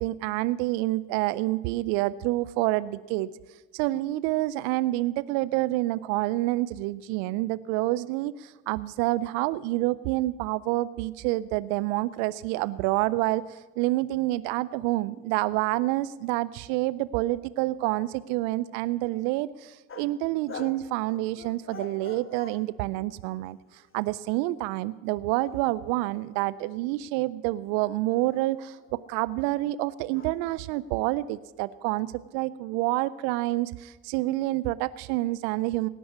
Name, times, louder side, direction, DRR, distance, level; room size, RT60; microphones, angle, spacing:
voice 1, 0.0-3.3 3.7-28.8 29.1-32.1 32.3-35.9, right 17 dB, 80° right, 17 dB, 0.5 m, -28 dB
sound 1, 19.9-20.2 20.5-22.7 23.5-24.4 25.3-27.2 28.1-29.2 30.1-31.4, left 5 dB, 30° left, 1.4 m, -47 dB
18.0 x 6.2 x 9.7 m, 1.2 s
hypercardioid pair, 50°, 41 cm